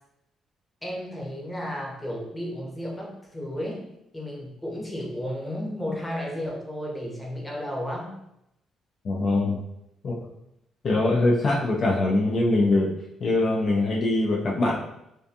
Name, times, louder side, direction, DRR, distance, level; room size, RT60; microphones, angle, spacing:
voice 1, 0.8-3.8 4.1-8.1, equal, 10° left, -3 dB, 0.7 m, -33 dB
voice 2, 9.0-9.6 10.0-10.2 10.8-12.9 13.2-14.8, left 2 dB, 55° left, -2 dB, 0.4 m, -22 dB
2.4 x 2.2 x 2.6 m, 0.82 s
cardioid pair, 90°, 0 cm